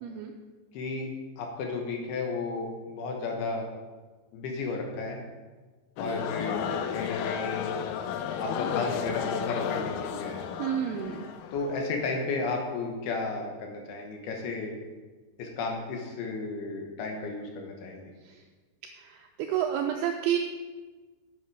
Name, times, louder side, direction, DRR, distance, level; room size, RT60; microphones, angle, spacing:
voice 1, 0.7-1.1 1.4-3.7 4.3-5.2 6.0-6.7 6.9-7.7 8.4-10.4 11.5-14.7 15.4-18.1, left 3 dB, 70° left, 1 dB, 2.8 m, -33 dB
sound 1, 6.0-12.4, left 8 dB, 85° left, 2.1 m, -33 dB
voice 2, 10.6-11.3 19.5-20.4, right 10 dB, 90° right, 4 dB, 2.2 m, -29 dB
8.5 x 8.0 x 4.8 m, 1.3 s
omnidirectional pair, 5.1 m